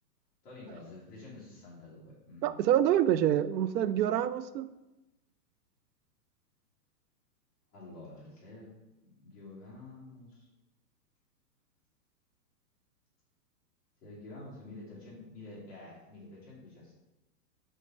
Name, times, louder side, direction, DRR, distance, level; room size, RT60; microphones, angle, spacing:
voice 1, 0.4-2.6 7.7-8.7 9.0-10.5 14.0-16.9, left 2 dB, 15° left, -7 dB, 1.6 m, -49 dB
voice 2, 2.4-4.7, right 11 dB, 80° right, 14 dB, 0.6 m, -26 dB
6.5 x 3.3 x 5.7 m, 1.0 s
hypercardioid pair, 170°, 50 cm